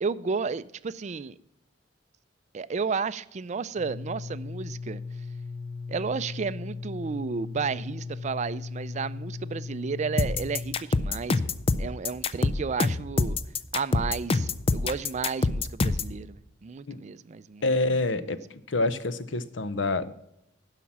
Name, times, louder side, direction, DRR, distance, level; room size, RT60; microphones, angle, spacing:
voice 1, 0.0-1.3 2.5-5.0 5.9-11.4 11.8-13.4 13.7-17.7 18.2-18.4, right 5 dB, 40° right, 0.4 m, -32 dB
sound 1, 3.7-10.7, left 4 dB, 10° left, 3.6 m, -37 dB
sound 2, 10.2-16.2, left 3 dB, 30° left, 0.4 m, -26 dB
voice 2, 17.6-18.4 18.7-20.1, left 2 dB, 80° left, 0.7 m, -27 dB
11.0 x 5.8 x 7.3 m
head